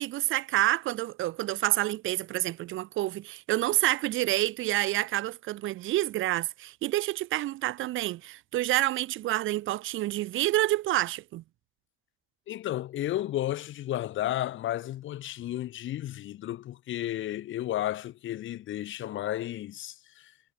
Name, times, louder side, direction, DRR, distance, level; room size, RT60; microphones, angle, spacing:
voice 1, 0.0-11.4, right 15 dB, 80° right, 0.8 m, -28 dB
voice 2, 12.5-20.3, left 13 dB, 75° left, 1.6 m, -33 dB
cardioid pair, 90°, 20 cm